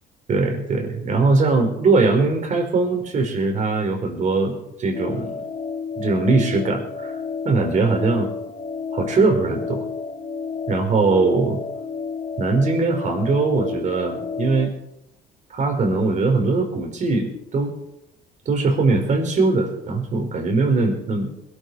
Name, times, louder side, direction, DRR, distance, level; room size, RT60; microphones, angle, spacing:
voice 1, 0.3-5.3 6.0-7.1 7.4-8.3 8.9-9.8 10.7-11.6 12.4-14.7 15.5-17.7 18.4-21.3, right 3 dB, 45° right, 4 dB, 4.8 m, -21 dB
sound 1, 4.9-14.7, left 5 dB, 45° left, 3.9 m, -31 dB
21.5 x 12.5 x 4.9 m, 0.85 s
cardioid pair, 110°, 17 cm